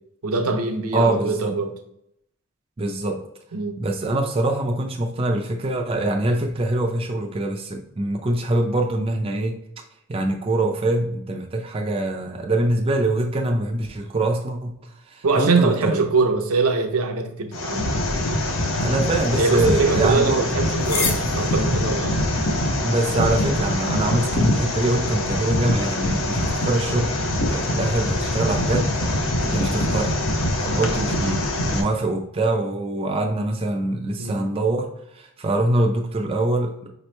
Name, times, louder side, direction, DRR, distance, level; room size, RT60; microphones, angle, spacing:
voice 1, 0.2-1.7 3.5-3.8 15.2-17.9 19.4-22.2 34.2-34.4, right 3 dB, 80° right, 0.6 m, -23 dB
voice 2, 0.9-1.5 2.8-3.3 3.8-9.6 10.1-14.7 15.1-16.1 18.8-20.5 21.9-22.0 22.8-30.2 30.6-36.9, right 2 dB, 25° right, 0.3 m, -24 dB
sound 1, 17.5-31.8, left 1 dB, 60° left, 0.7 m, -24 dB
sound 2, 18.0-24.5, left 4 dB, 90° left, 1.0 m, -35 dB
5.0 x 3.0 x 3.2 m
head